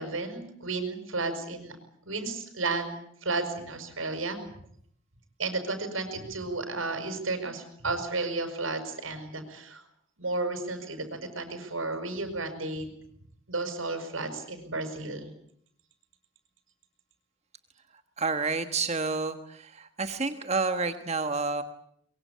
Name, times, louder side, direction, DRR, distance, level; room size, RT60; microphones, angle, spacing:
voice 1, 0.0-1.8 2.1-2.9 3.2-4.4 5.4-9.8 10.2-12.9 13.5-15.3, right 3 dB, 80° right, 7 dB, 6.4 m, -33 dB
voice 2, 18.2-21.6, right 4 dB, 35° right, 8 dB, 1.4 m, -29 dB
24.0 x 23.0 x 8.6 m, 0.67 s
head